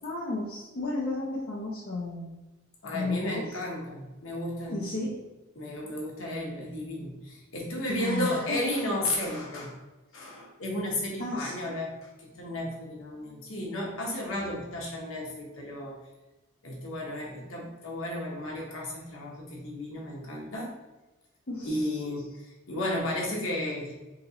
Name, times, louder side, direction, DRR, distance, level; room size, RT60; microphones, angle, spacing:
voice 1, 0.0-2.3 2.9-3.6 4.7-5.2 7.9-8.6 11.2-11.8 21.5-22.0, left 2 dB, 45° left, -5 dB, 0.6 m, -33 dB
voice 2, 2.8-4.8 5.5-9.8 10.1-11.9 12.2-16.0 16.6-20.8 21.6-24.0, left 1 dB, 65° left, -3 dB, 1.1 m, -33 dB
3.9 x 2.9 x 2.8 m, 1.1 s
head